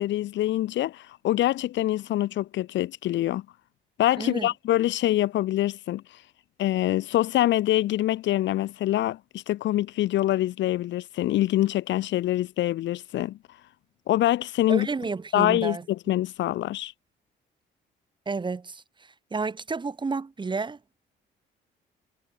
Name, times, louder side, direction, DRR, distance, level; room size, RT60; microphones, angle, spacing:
voice 1, 0.0-3.4 4.0-6.0 6.6-13.4 14.1-14.9 15.3-15.8 16.1-16.9, left 14 dB, 70° left, 0.5 m, -25 dB
voice 2, 4.2-4.5 14.7-15.9 18.3-20.8, right 4 dB, 25° right, 0.9 m, -31 dB
cardioid pair, 90°, 20 cm